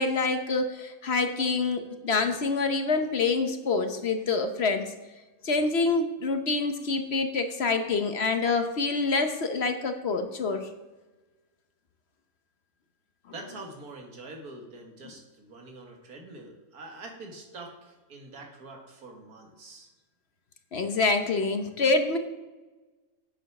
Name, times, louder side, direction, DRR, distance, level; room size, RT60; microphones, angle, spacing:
voice 1, 0.0-4.9 5.4-10.7 20.7-22.2, left 3 dB, 50° left, 7 dB, 1.0 m, -26 dB
voice 2, 13.3-19.9, right 2 dB, 85° right, 2 dB, 2.2 m, -45 dB
9.0 x 7.0 x 6.0 m, 1.2 s
omnidirectional pair, 1.5 m